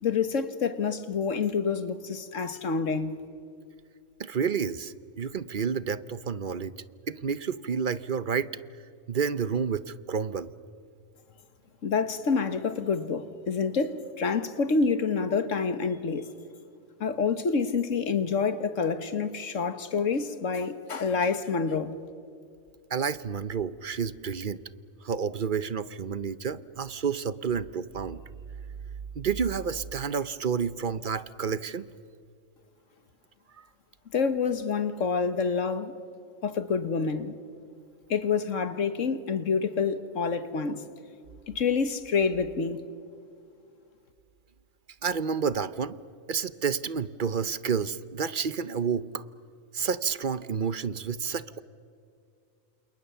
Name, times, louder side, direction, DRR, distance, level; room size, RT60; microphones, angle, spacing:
voice 1, 0.0-3.2 11.8-16.3 17.0-22.0 34.1-35.9 36.4-37.3 38.1-40.8 41.5-42.8, left 5 dB, 65° left, 1.6 m, -27 dB
voice 2, 4.2-6.7 7.1-8.5 9.1-10.5 22.9-24.6 25.0-28.2 29.2-31.8 45.0-46.0 46.3-49.2 49.7-51.6, right 6 dB, 45° right, 0.8 m, -30 dB
29.0 x 28.0 x 6.9 m
omnidirectional pair, 1.4 m